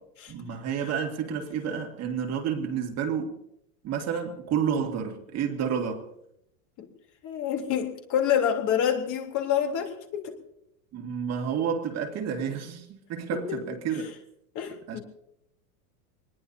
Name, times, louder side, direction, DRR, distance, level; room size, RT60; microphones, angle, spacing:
voice 1, 0.3-3.4 3.8-6.1 10.9-14.1 14.9-15.0, right 7 dB, 35° right, 2.2 m, -30 dB
voice 2, 7.2-10.4 13.5-13.6 14.5-15.0, left 9 dB, 40° left, 3.4 m, -27 dB
24.5 x 20.5 x 2.8 m
supercardioid pair, 140°, 46 cm